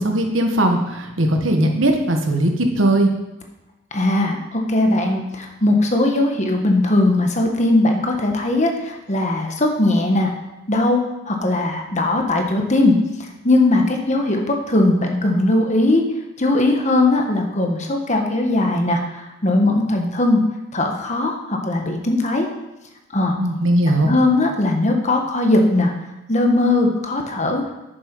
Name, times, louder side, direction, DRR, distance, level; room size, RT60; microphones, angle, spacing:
voice 1, 0.0-3.1 23.4-24.1, right 1 dB, 75° right, 3 dB, 1.5 m, -18 dB
voice 2, 3.9-10.3 10.7-16.0 16.4-20.4 20.7-22.5 23.1-23.4 24.0-25.9 26.3-27.6, left 2 dB, 35° left, 3 dB, 1.4 m, -19 dB
9.9 x 7.2 x 5.4 m, 0.99 s
head